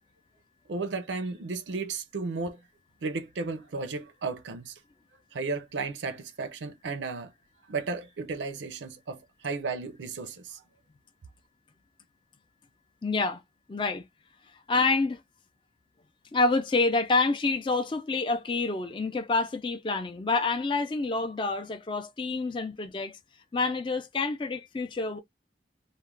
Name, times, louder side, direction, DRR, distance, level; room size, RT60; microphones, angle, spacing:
voice 1, 0.7-2.6 3.0-4.8 5.3-7.3 7.7-10.6, right 4 dB, 90° right, 0.5 m, -34 dB
voice 2, 13.0-13.4 13.7-14.0 14.7-15.2 16.3-23.2 23.5-25.2, left 3 dB, 25° left, 0.4 m, -27 dB
2.4 x 2.1 x 3.1 m
head